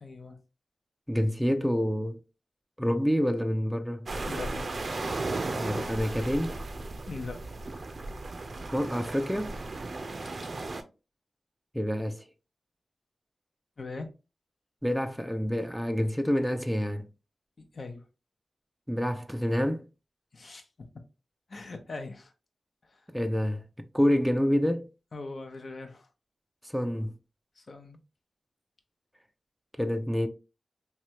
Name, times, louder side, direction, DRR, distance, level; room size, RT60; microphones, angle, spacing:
voice 1, 0.0-0.4 4.3-4.7 7.1-7.4 13.8-14.1 17.6-18.0 20.3-20.9 21.5-22.3 22.8-23.0 25.1-26.1 27.6-28.0, left 3 dB, 60° left, 0.6 m, -41 dB
voice 2, 1.1-2.2 2.8-4.1 5.5-6.6 8.7-9.6 11.7-12.2 14.8-17.1 18.9-19.8 23.1-24.9 26.6-27.1 29.8-30.3, equal, ahead, 0.4 m, -27 dB
sound 1, 4.1-10.8, right 2 dB, 60° right, 0.5 m, -35 dB
3.1 x 2.3 x 2.8 m
cardioid pair, 45°, 0 cm